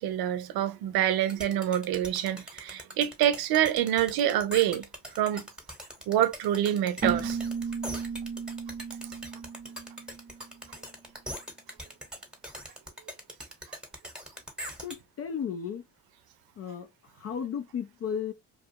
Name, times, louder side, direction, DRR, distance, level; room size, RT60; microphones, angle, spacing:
voice 1, 0.0-4.8 5.2-5.5 6.1-7.4, right 11 dB, 65° right, 0.6 m, -26 dB
sound 1, 1.3-15.0, equal, ahead, 1.0 m, -41 dB
Keyboard (musical), 7.0-10.6, right 5 dB, 25° right, 0.5 m, -34 dB
voice 2, 14.8-15.8 16.6-18.3, left 7 dB, 35° left, 0.4 m, -34 dB
2.4 x 2.4 x 2.7 m
supercardioid pair, 75°, 40 cm